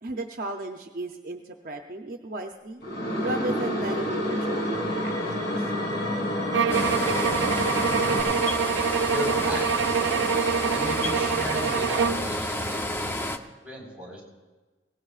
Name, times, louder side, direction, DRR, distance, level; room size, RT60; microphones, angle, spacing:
voice 1, 0.0-2.8 3.2-5.7, right 2 dB, 50° right, 4 dB, 0.6 m, -35 dB
sound 1, 2.8-8.2, left 1 dB, 65° left, 3.2 m, -28 dB
sound 2, 6.5-12.3, right 6 dB, 90° right, 0.4 m, -26 dB
sound 3, 6.7-13.4, left 1 dB, 15° left, 0.5 m, -30 dB
voice 2, 9.1-9.7 10.7-14.2, equal, 10° right, -3 dB, 4.3 m, -35 dB
21.0 x 18.0 x 2.4 m, 1.3 s
head